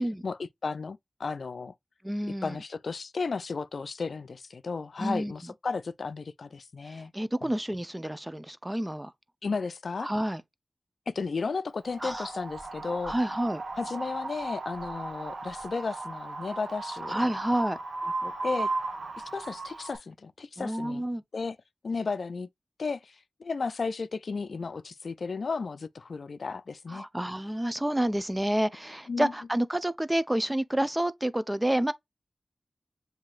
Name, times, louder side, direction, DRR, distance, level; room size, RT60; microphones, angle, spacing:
voice 1, 0.2-1.7 2.4-7.1 7.4-7.5 9.4-10.1 11.1-13.1 13.8-17.2 18.2-18.7 19.2-21.0 21.3-21.6 21.8-22.5 22.8-27.1 29.1-29.3, left 4 dB, 80° left, 0.4 m, -34 dB
voice 2, 2.0-2.6 5.0-5.3 6.9-9.1 10.0-10.4 12.0-12.3 13.0-13.6 17.0-17.8 20.6-21.2 26.9-31.9, right 1 dB, 15° right, 0.7 m, -29 dB
Wind, 11.8-20.0, right 3 dB, 90° right, 1.1 m, -36 dB
7.3 x 2.8 x 2.4 m
cardioid pair, 40°, 0 cm